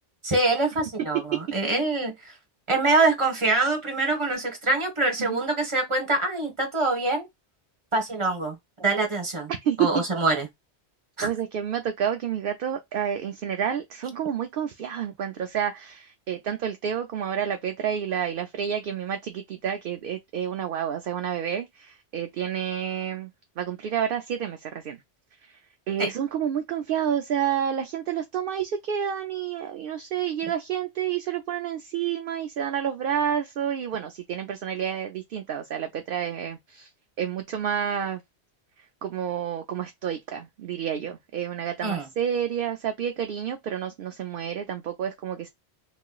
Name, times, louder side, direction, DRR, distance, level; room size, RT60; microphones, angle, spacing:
voice 1, 0.2-2.3 2.7-7.3 7.9-9.5 9.8-10.5 11.2-11.3 26.0-26.1 41.8-42.1, right 3 dB, 30° right, 1.2 m, -25 dB
voice 2, 9.5-10.0 11.2-23.3 23.6-25.0 25.5-25.6 25.9-36.9 37.2-38.2 39.0-45.5, right 9 dB, 60° right, 0.7 m, -29 dB
3.1 x 2.9 x 2.3 m
omnidirectional pair, 1.1 m